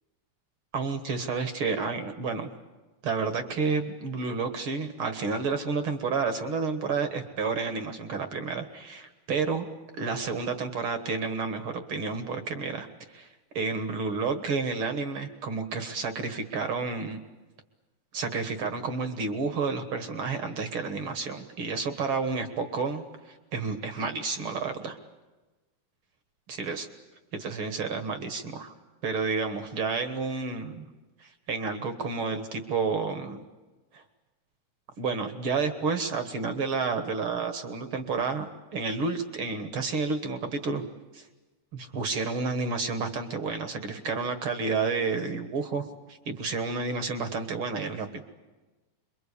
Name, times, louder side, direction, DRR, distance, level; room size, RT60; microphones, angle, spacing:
voice 1, 0.7-2.5 3.0-9.6 10.0-13.3 13.5-17.2 18.1-25.0 26.5-26.9 27.3-28.7 29.0-30.9 31.2-33.4 33.9-34.0 35.0-40.8 41.1-41.3 41.7-48.2, right 4 dB, 60° right, 9 dB, 1.4 m, -30 dB
26.0 x 23.0 x 8.5 m, 1.2 s
omnidirectional pair, 4.4 m